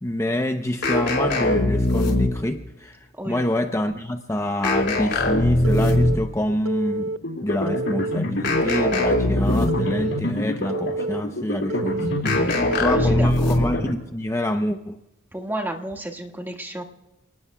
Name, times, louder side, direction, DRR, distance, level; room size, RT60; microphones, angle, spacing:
voice 1, 0.0-3.0 3.3-7.1 7.4-12.5 12.8-15.0, left 1 dB, 15° left, 0.7 m, -26 dB
sound 1, 0.8-2.6 4.6-6.3 8.4-10.0 12.2-13.8, left 1 dB, 55° left, 4.3 m, -21 dB
Telephone, 5.6-6.2 6.6-7.2 7.7-8.2 8.7-9.2 9.7-10.2 10.7-11.2 11.7-12.2 12.7-13.2, right 2 dB, 90° right, 0.5 m, -28 dB
sound 2, 7.2-13.9, left 1 dB, 75° left, 5.1 m, -29 dB
voice 2, 12.5-13.5 15.3-16.8, right 1 dB, 10° right, 1.7 m, -32 dB
30.0 x 19.0 x 2.3 m
head